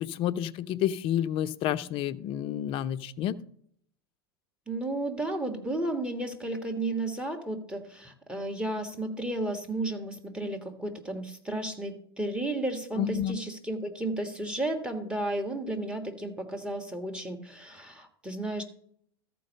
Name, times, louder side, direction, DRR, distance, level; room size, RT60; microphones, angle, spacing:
voice 1, 0.0-3.4 13.0-13.4, left 11 dB, 45° left, 14 dB, 0.6 m, -30 dB
voice 2, 4.7-18.6, right 2 dB, 10° right, 6 dB, 1.6 m, -33 dB
14.0 x 4.6 x 5.3 m, 0.66 s
hypercardioid pair, 90°, 13 cm